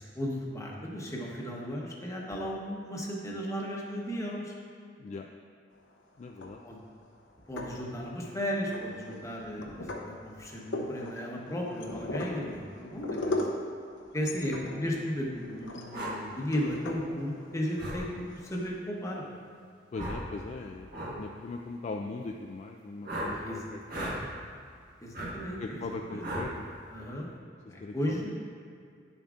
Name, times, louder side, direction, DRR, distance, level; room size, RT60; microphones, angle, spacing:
voice 1, 0.0-4.5 6.6-6.8 7.5-13.5 14.1-19.2 23.3-23.6 25.0-26.2 26.9-27.3 27.7-28.3, equal, 15° left, -2 dB, 0.9 m, -35 dB
sound 1, 6.2-6.9 7.4-8.3 8.7-18.7, left 1 dB, 75° left, 0.8 m, -38 dB
voice 2, 6.2-6.6 19.9-24.1 25.6-26.7 27.8-28.3, left 3 dB, 40° left, 2 dB, 0.3 m, -40 dB
sound 2, 15.9-16.1 17.8-18.0 19.9-20.2 20.9-21.1 23.0-23.3 23.9-24.2 25.1-25.3 26.2-26.5, right 1 dB, 50° right, 1.5 m, -35 dB
9.5 x 7.0 x 2.4 m, 2.3 s
head